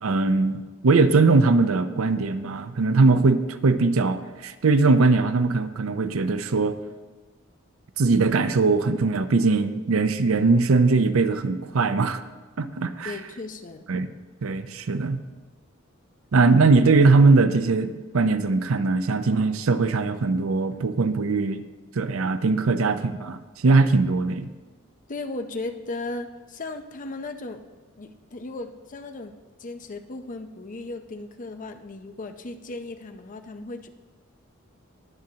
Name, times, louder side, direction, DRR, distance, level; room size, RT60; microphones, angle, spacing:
voice 1, 0.0-6.8 8.0-12.2 12.6-13.1 13.9-14.1 14.4-15.2 16.3-21.6 22.0-24.5, right 3 dB, 90° right, 11 dB, 0.6 m, -21 dB
voice 2, 13.0-13.8 25.1-27.6 28.0-29.3 29.6-33.9, left 2 dB, 40° left, 7 dB, 0.6 m, -36 dB
20.0 x 7.5 x 2.8 m, 1.3 s
head